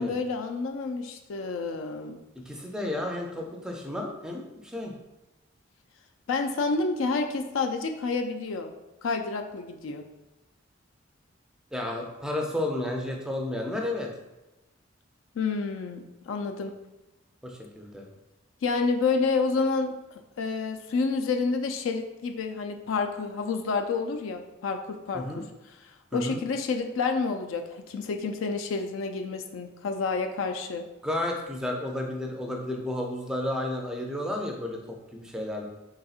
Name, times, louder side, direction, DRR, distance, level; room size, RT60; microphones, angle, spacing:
voice 1, 0.0-2.2 6.3-8.7 9.0-10.0 15.4-16.7 18.6-25.5 26.1-30.9, left 4 dB, 80° left, 6 dB, 0.4 m, -29 dB
voice 2, 2.5-4.9 11.7-14.1 17.4-18.1 25.1-25.4 26.1-26.4 31.0-35.6, left 1 dB, 5° right, 0 dB, 0.4 m, -32 dB
4.0 x 3.5 x 2.4 m, 1.0 s
head